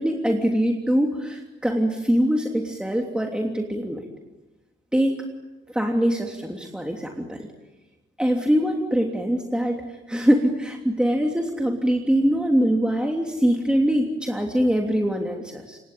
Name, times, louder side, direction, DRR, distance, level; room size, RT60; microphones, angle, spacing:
voice 1, 0.0-4.0 4.9-5.2 5.7-7.4 8.2-9.8 10.1-15.8, equal, 5° right, 2 dB, 3.1 m, -23 dB
27.5 x 23.0 x 9.3 m, 1.1 s
cardioid pair, 90°, 20 cm